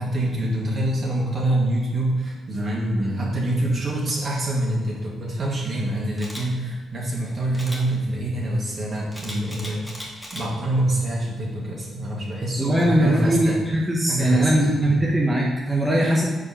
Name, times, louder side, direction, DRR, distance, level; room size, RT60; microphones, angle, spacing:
voice 1, 0.0-10.0 10.3-13.6 14.1-15.0, right 1 dB, 50° right, -4 dB, 2.2 m, -25 dB
Camera, 6.2-6.4 7.5-7.8 9.1-10.4 10.9-11.2, equal, 5° left, 1.9 m, -36 dB
voice 2, 12.6-16.3, right 1 dB, 10° right, -3 dB, 1.1 m, -20 dB
4.9 x 4.8 x 5.6 m, 1.3 s
cardioid pair, 80°, 0 cm